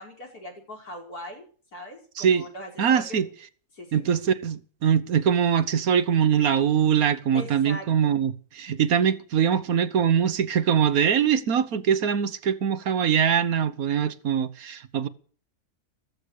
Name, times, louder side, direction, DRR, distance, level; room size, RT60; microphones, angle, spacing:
voice 1, 0.0-1.5 1.7-3.2 3.7-4.1 7.3-8.2, left 1 dB, 80° left, 5.7 m, -40 dB
voice 2, 2.8-3.3 3.9-15.1, right 8 dB, 70° right, 1.5 m, -23 dB
14.5 x 14.5 x 6.5 m
omnidirectional pair, 1.6 m